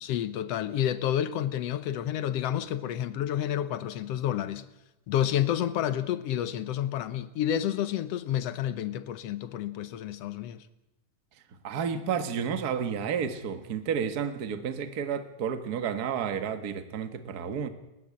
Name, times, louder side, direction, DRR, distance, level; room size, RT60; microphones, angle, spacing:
voice 1, 0.0-4.7 5.1-10.7, left 11 dB, 70° left, 1.5 m, -30 dB
voice 2, 11.6-17.7, right 7 dB, 45° right, 1.4 m, -31 dB
30.0 x 12.0 x 8.6 m
omnidirectional pair, 3.7 m